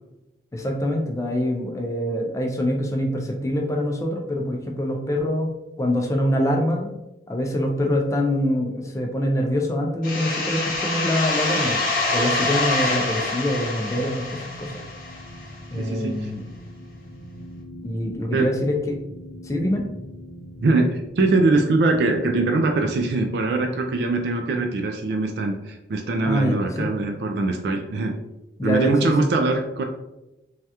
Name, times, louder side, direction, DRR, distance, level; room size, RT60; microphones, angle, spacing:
voice 1, 0.5-5.5 5.8-6.9 7.3-11.8 12.1-14.7 15.7-16.4 17.8-19.0 19.4-19.8 26.3-26.9 28.6-29.3, left 1 dB, 15° left, 1 dB, 0.3 m, -24 dB
sound 1, 10.0-15.6, left 2 dB, 50° left, 0.8 m, -26 dB
sound 2, 12.7-25.9, left 1 dB, 85° left, 0.5 m, -43 dB
voice 2, 15.7-16.3 18.3-18.5 20.6-28.2 28.6-29.8, right 3 dB, 70° right, 4 dB, 0.3 m, -22 dB
3.2 x 2.3 x 2.8 m, 0.96 s
head